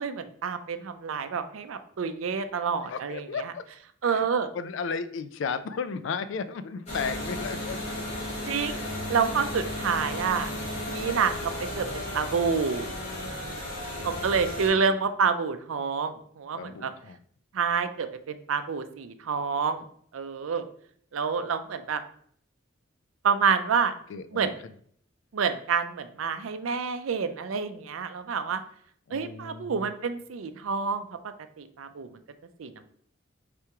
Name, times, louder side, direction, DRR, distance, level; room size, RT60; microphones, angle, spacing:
voice 1, 0.0-3.5 4.0-4.5 8.5-10.5 10.9-11.3 11.7-12.9 14.0-16.9 17.5-19.8 20.1-20.6 21.1-22.0 23.2-23.9 24.3-24.6 25.3-28.6 29.1-31.1 31.6-32.1 32.6-32.8, right 6 dB, 90° right, 10 dB, 0.5 m, -28 dB
voice 2, 2.9-3.6 4.0-4.2 4.5-7.8 8.6-8.9 14.0-14.4 14.6-15.0 16.5-17.2 24.1-24.5 29.1-29.9, left 5 dB, 70° left, 12 dB, 0.3 m, -35 dB
sound 1, 6.9-14.7, left 1 dB, 35° left, 1.9 m, -34 dB
4.7 x 3.4 x 2.9 m, 0.62 s
head